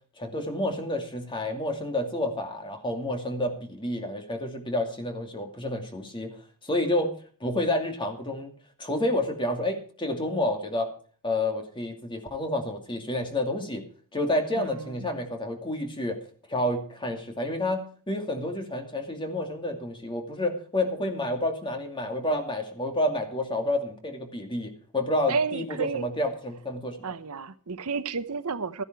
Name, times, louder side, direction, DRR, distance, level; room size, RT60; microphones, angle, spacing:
voice 1, 0.2-6.4 6.6-7.1 7.4-8.5 8.8-10.9 11.2-13.8 14.1-16.2 16.5-27.1, left 1 dB, 20° left, 2.5 m, -29 dB
voice 2, 14.5-15.1 25.3-26.1 27.0-28.8, right 5 dB, 80° right, 0.9 m, -31 dB
14.0 x 10.5 x 4.6 m
head